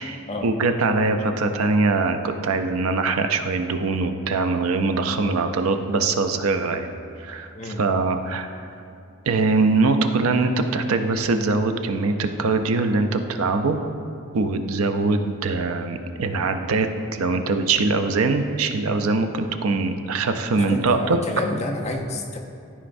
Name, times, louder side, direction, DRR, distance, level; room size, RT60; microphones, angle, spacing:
voice 1, 0.0-8.6 9.3-13.8 14.3-21.2, right 3 dB, 90° right, 7 dB, 0.5 m, -22 dB
voice 2, 20.5-22.4, left 2 dB, 30° left, 1 dB, 0.6 m, -29 dB
13.0 x 5.0 x 2.6 m, 2.4 s
head